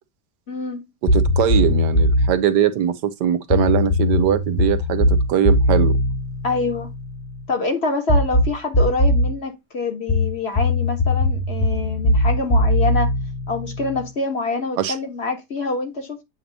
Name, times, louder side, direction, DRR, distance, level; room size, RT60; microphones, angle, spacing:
voice 1, 0.5-0.9 6.4-6.9 7.5-13.1 13.5-16.2, left 3 dB, 40° left, 1.7 m, -26 dB
sound 1, 1.1-2.4 3.5-7.2 8.1-9.3 10.1-14.0, left 1 dB, 20° left, 1.3 m, -19 dB
voice 2, 1.1-6.0 14.8-14.9, right 9 dB, 80° right, 1.4 m, -21 dB
8.5 x 2.9 x 5.2 m
omnidirectional pair, 1.8 m